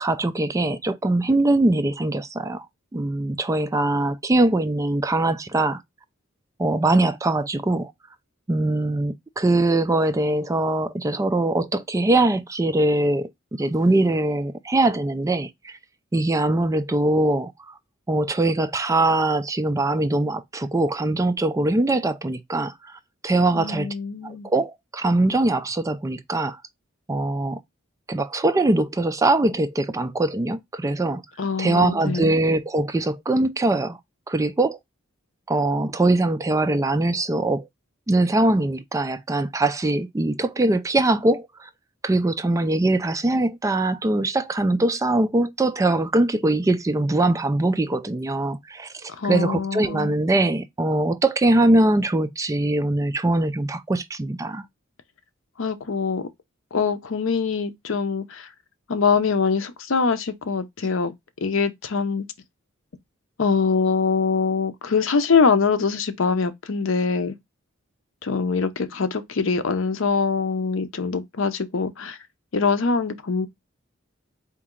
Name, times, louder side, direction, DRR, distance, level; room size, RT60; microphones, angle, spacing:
voice 1, 0.0-2.6 2.9-5.8 6.6-7.9 8.5-15.7 16.1-17.5 18.1-22.7 23.2-23.9 24.2-26.6 27.1-27.6 28.1-31.2 31.6-34.0 34.3-34.8 35.5-37.7 38.1-41.7 42.0-54.6, right 2 dB, 15° right, 0.3 m, -22 dB
voice 2, 23.5-24.5 31.4-32.3 49.2-50.2 55.6-56.2 56.7-58.5 58.9-61.1 61.4-62.3 63.4-67.4 68.2-72.2 72.5-73.5, left 5 dB, 70° left, 0.6 m, -23 dB
4.1 x 2.9 x 3.6 m
head